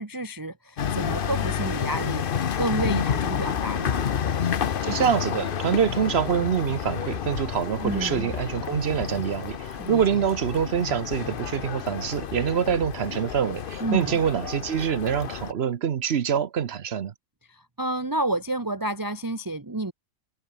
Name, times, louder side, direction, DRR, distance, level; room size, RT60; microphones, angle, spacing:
voice 1, 0.0-4.1 7.8-8.3 9.8-10.0 13.8-14.2 17.5-19.9, right 2 dB, 15° right, 1.0 m, -30 dB
sound 1, 0.8-15.5, left 8 dB, 45° left, 0.8 m, -30 dB
voice 2, 4.8-17.1, right 8 dB, 50° right, 1.0 m, -25 dB
omnidirectional pair, 1.5 m